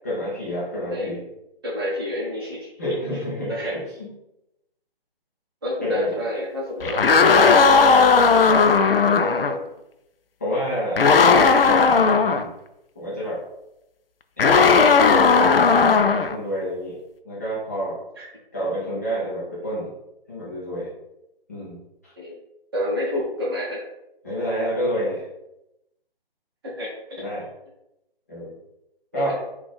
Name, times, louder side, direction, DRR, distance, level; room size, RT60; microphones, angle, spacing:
voice 1, 0.0-1.2 2.8-4.1 5.8-6.1 10.4-11.0 11.9-12.5 13.0-13.4 14.4-15.4 15.7-17.0 17.2-18.0 18.5-19.9 20.3-20.9 21.5-22.1 24.2-25.3 27.2-27.4 28.3-28.5 29.1-29.4, equal, 15° left, -10 dB, 0.6 m, -28 dB
voice 2, 1.6-2.7 3.5-3.7 5.6-8.0 8.3-8.7 9.1-9.6 18.2-18.3 22.2-22.3 22.7-23.8 26.6-27.2 29.1-29.3, left 1 dB, 25° right, -5 dB, 1.0 m, -29 dB
sound 1, 6.8-9.5 11.0-12.4 14.4-16.4, left 5 dB, 70° left, 0.4 m, -16 dB
3.8 x 2.4 x 3.6 m, 0.87 s
figure-of-eight pair, 145°, 30 cm